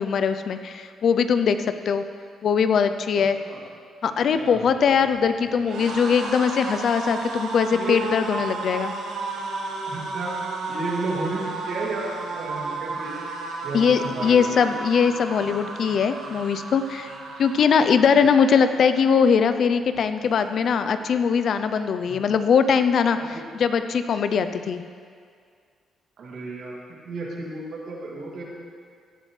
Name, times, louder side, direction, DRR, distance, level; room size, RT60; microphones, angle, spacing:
voice 1, 0.0-2.0 2.4-3.4 4.0-8.9 13.7-17.1 17.4-24.8, left 6 dB, 60° left, 10 dB, 0.5 m, -21 dB
voice 2, 3.1-3.6 7.7-8.0 9.9-10.3 10.7-13.2 13.6-14.6 22.0-22.2 23.1-23.4 26.2-26.8 27.0-28.4, right 3 dB, 65° right, -4 dB, 2.6 m, -32 dB
sound 1, 4.2-19.4 19.7-20.0 20.2-21.0, right 3 dB, 85° right, 1.6 m, -34 dB
16.5 x 8.8 x 3.3 m, 2.1 s
cardioid pair, 90°, 0 cm